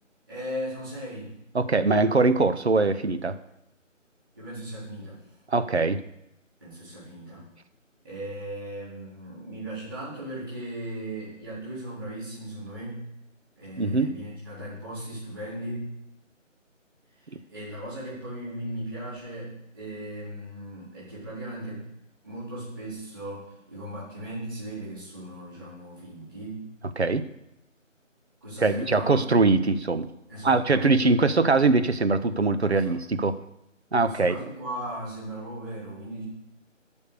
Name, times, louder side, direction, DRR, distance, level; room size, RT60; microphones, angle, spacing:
voice 1, 0.3-1.3 4.3-5.2 6.6-7.5 8.0-13.1 13.6-15.9 17.1-21.8 22.2-26.6 28.4-29.2 30.3-30.9 32.7-33.0 34.0-36.2, right 1 dB, 15° right, -10 dB, 3.9 m, -37 dB
voice 2, 1.5-3.4 5.5-6.0 13.8-14.1 27.0-27.2 28.6-30.1 30.4-33.4 33.9-34.4, right 3 dB, 55° right, 11 dB, 0.9 m, -22 dB
12.5 x 5.3 x 6.7 m, 0.83 s
figure-of-eight pair, 170°, 39 cm